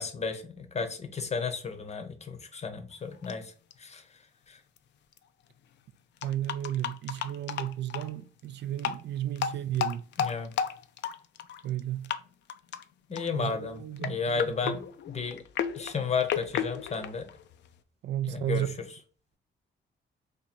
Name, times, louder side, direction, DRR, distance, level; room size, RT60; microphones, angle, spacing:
voice 1, 0.0-3.5 3.8-4.0 4.5-4.6 10.2-10.5 13.1-15.4 15.7-17.3 18.3-18.7, left 5 dB, 35° left, 0.8 m, -33 dB
sound 1, 3.2-3.3 3.7-3.8 4.8-4.9 5.1-5.2 6.2-8.1 8.7-9.0 9.4-11.8 12.0-12.2 12.5-12.8 13.2-13.5 14.0-17.8, left 8 dB, 65° left, 0.4 m, -33 dB
voice 2, 6.2-10.0 11.6-12.1 13.3-14.8 18.0-18.7, right 12 dB, 60° right, 0.4 m, -33 dB
2.9 x 2.6 x 4.1 m
cardioid pair, 90°, 20 cm